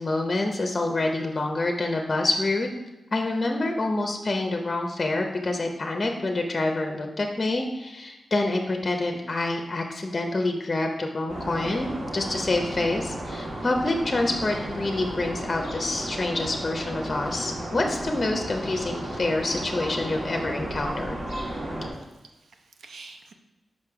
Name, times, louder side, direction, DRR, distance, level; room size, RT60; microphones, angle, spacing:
voice 1, 0.0-2.7 3.1-21.1, left 2 dB, 35° left, 3 dB, 0.6 m, -27 dB
sound 1, 11.3-21.9, right 1 dB, 50° right, 2.0 m, -34 dB
voice 2, 21.9-23.3, right 4 dB, 90° right, 5 dB, 0.6 m, -48 dB
5.3 x 5.2 x 4.7 m, 1.0 s
wide cardioid pair, 85°, 0 cm